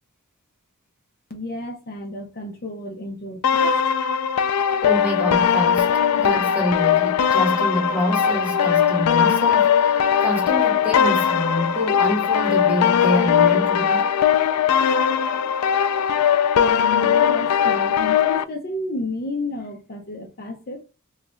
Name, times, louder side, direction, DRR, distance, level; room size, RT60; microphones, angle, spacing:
voice 1, 1.3-3.8 16.6-20.8, left 2 dB, 45° left, 0.6 m, -32 dB
sound 1, 3.4-18.4, left 8 dB, 85° left, 0.3 m, -19 dB
voice 2, 4.8-14.1, left 1 dB, 5° right, 1.2 m, -26 dB
3.2 x 2.4 x 3.0 m
head